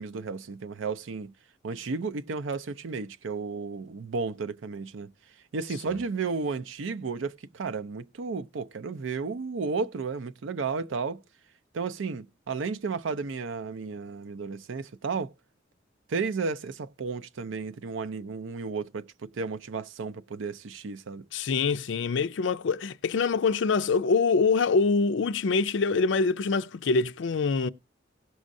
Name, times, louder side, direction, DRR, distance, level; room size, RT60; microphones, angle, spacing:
voice 1, 0.0-1.3 1.6-5.1 5.5-11.2 11.7-15.3 16.1-21.2, right 4 dB, 85° right, 0.5 m, -33 dB
voice 2, 21.3-27.7, left 4 dB, 70° left, 0.4 m, -25 dB
17.0 x 6.3 x 2.6 m
head